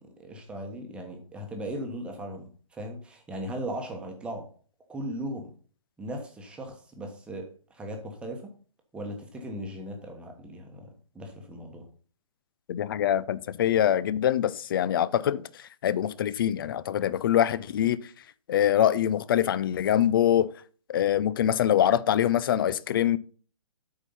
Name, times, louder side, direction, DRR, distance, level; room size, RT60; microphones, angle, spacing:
voice 1, 0.2-4.5 4.9-5.5 6.0-8.5 8.9-11.9, right 1 dB, 5° right, 1.1 m, -38 dB
voice 2, 12.7-18.0 18.5-20.5 20.9-23.2, left 10 dB, 40° left, 0.5 m, -24 dB
8.5 x 4.5 x 5.5 m
hypercardioid pair, 150°, 18 cm